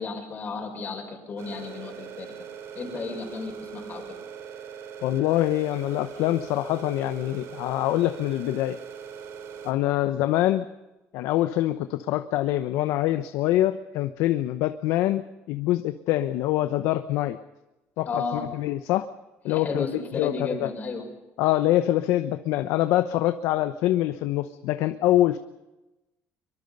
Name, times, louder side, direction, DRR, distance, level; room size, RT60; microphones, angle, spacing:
voice 1, 0.0-2.3 2.8-4.1 18.1-18.4 19.5-21.1, left 4 dB, 30° left, 1 dB, 5.7 m, -33 dB
sound 1, 1.4-9.7, right 7 dB, 60° right, 3.2 m, -41 dB
voice 2, 5.0-8.8 9.6-10.6 11.1-15.2 15.5-17.4 18.0-19.0 19.4-19.9 20.1-20.3 20.6-20.7 21.4-25.4, left 14 dB, 75° left, 10 dB, 1.0 m, -24 dB
24.0 x 23.5 x 5.5 m, 1.0 s
cardioid pair, 140°, 5 cm